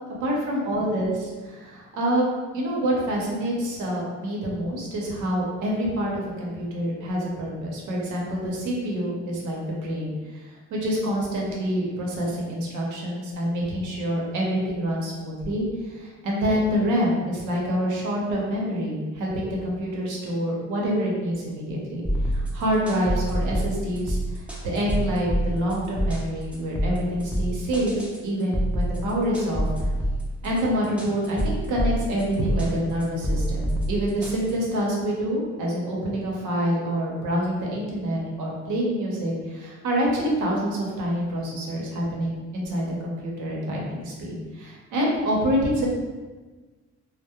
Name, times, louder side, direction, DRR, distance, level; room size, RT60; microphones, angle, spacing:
voice 1, 0.2-2.3 2.5-29.7 30.4-45.9, equal, 80° right, -3 dB, 0.7 m, -27 dB
sound 1, 22.1-34.9, right 1 dB, 5° right, 0.4 m, -27 dB
2.3 x 2.0 x 2.9 m, 1.3 s
cardioid pair, 90°, 30 cm